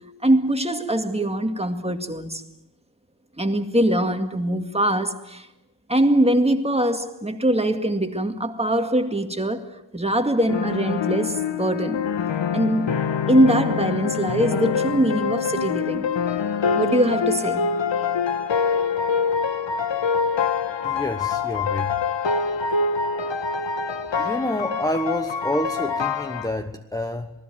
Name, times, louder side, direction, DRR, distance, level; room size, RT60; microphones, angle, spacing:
voice 1, 0.2-2.4 3.4-5.5 5.9-12.0 12.5-12.9 13.3-16.1 16.8-17.6, right 1 dB, 15° right, 2.1 m, -22 dB
sound 1, 10.5-26.5, left 6 dB, 70° left, 1.9 m, -25 dB
voice 2, 20.8-22.0 24.2-27.3, left 1 dB, 10° left, 1.1 m, -28 dB
28.0 x 19.5 x 9.2 m
wide cardioid pair, 105°, 45 cm